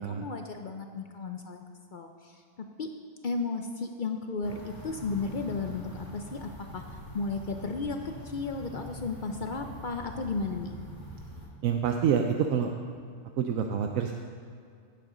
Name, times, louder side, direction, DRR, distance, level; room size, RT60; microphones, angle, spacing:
voice 1, 0.0-1.6 1.9-2.4 2.8-2.9 3.2-6.8 7.1-10.8, left 4 dB, 60° left, 5 dB, 0.5 m, -34 dB
sound 1, 4.4-11.5, equal, 15° left, 1.7 m, -44 dB
voice 2, 11.6-12.7 13.4-14.1, right 7 dB, 75° right, 4 dB, 1.0 m, -27 dB
16.0 x 7.8 x 3.8 m, 2.3 s
omnidirectional pair, 1.5 m